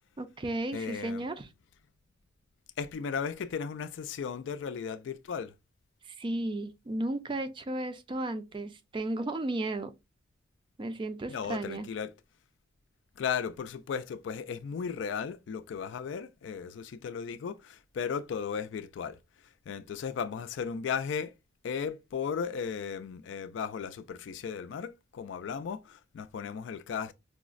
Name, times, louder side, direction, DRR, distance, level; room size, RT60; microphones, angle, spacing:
voice 1, 0.2-1.5 6.0-9.9 10.8-11.9, right 2 dB, 25° right, 0.4 m, -34 dB
voice 2, 0.7-1.3 2.8-5.5 11.3-12.1 13.2-19.2 19.7-21.3 21.6-27.1, left 6 dB, 75° left, 0.3 m, -35 dB
4.7 x 2.0 x 2.4 m
head